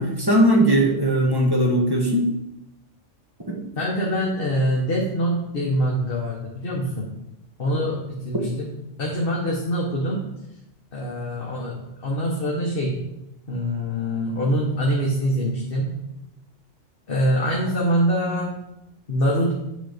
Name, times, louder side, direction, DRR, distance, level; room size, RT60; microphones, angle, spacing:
voice 1, 0.0-2.3 3.5-3.6, right 1 dB, 20° right, -1 dB, 1.2 m, -19 dB
voice 2, 3.8-7.1 7.6-8.7 9.0-10.3 10.9-13.0 13.5-15.9 17.1-18.5 19.1-19.5, equal, 50° left, -4 dB, 1.4 m, -24 dB
8.7 x 4.0 x 5.1 m, 0.88 s
omnidirectional pair, 1.3 m